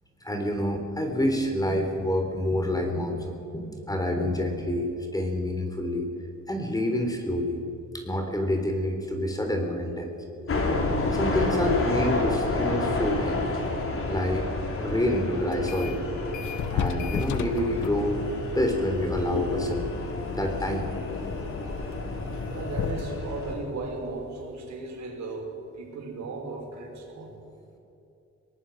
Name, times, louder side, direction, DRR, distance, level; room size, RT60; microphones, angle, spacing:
voice 1, 0.2-6.1 6.5-7.6 7.9-10.1 11.1-13.4 14.1-14.4 14.8-16.0 16.7-18.2 18.5-19.9 20.3-20.9, left 1 dB, 10° left, 4 dB, 3.7 m, -27 dB
sound 1, 10.5-23.5, left 2 dB, 45° left, 4.2 m, -30 dB
sound 2, 15.5-16.0 16.3-24.8, left 7 dB, 75° left, 1.3 m, -36 dB
voice 2, 22.5-27.3, right 3 dB, 65° right, 0 dB, 5.8 m, -36 dB
23.0 x 19.0 x 6.4 m, 2.9 s
cardioid pair, 90°, 30 cm